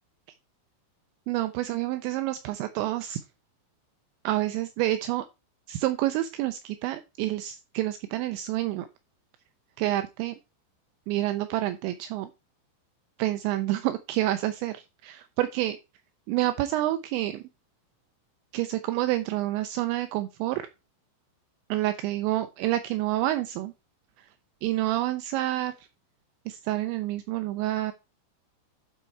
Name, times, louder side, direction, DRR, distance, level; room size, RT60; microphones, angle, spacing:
voice 1, 1.3-3.2 4.2-5.3 5.7-8.9 9.8-10.4 11.1-12.3 13.2-15.8 16.3-17.4 18.5-20.7 21.7-23.7 24.2-24.3 24.6-25.9 26.5-27.9, right 15 dB, 85° right, 10 dB, 2.6 m, -28 dB
11.5 x 4.4 x 4.5 m, 0.27 s
omnidirectional pair, 5.8 m